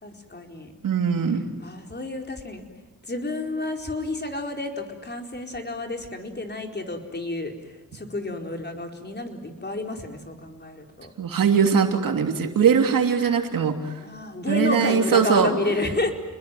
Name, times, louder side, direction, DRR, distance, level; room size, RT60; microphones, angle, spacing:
voice 1, 0.0-0.7 1.6-2.6 3.1-7.5 7.9-11.1 14.0-16.1, left 2 dB, 30° left, 3 dB, 4.5 m, -30 dB
voice 2, 0.8-1.4 11.2-13.9 14.5-15.5, right 6 dB, 85° right, 4 dB, 3.0 m, -21 dB
30.0 x 21.0 x 9.3 m, 1.1 s
cardioid pair, 65°, 33 cm